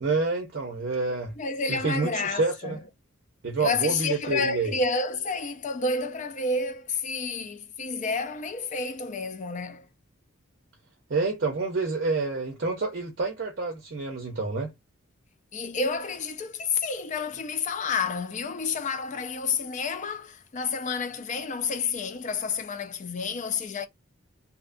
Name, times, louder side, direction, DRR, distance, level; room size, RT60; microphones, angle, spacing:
voice 1, 0.0-1.3 1.7-2.8 3.4-4.7 11.1-14.7, right 3 dB, 50° right, 0.6 m, -28 dB
voice 2, 1.4-2.8 3.6-9.9 15.5-23.9, left 4 dB, 35° left, 0.4 m, -30 dB
2.7 x 2.2 x 2.5 m
head